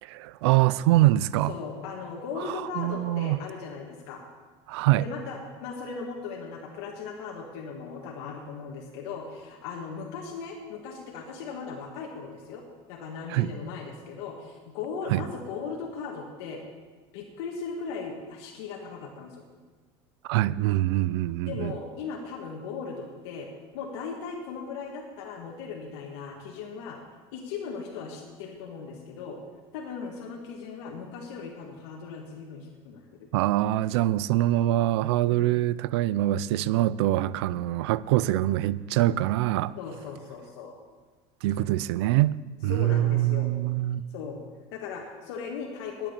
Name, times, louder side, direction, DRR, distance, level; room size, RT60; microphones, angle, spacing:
voice 1, 0.0-1.5 2.8-3.4 4.7-5.1 13.3-13.5 15.1-15.2 20.2-21.8 33.3-39.8 41.4-44.0, right 15 dB, 90° right, 0.4 m, -24 dB
voice 2, 1.5-4.2 5.0-12.6 12.9-16.6 17.1-19.4 21.4-23.5 23.7-27.0 27.3-29.4 29.7-33.3 35.3-35.6 37.7-37.8 39.8-40.7 42.7-43.5 44.1-44.4 44.7-46.1, left 5 dB, 80° left, 1.6 m, -38 dB
11.5 x 8.8 x 6.7 m
supercardioid pair, 130°, 14 cm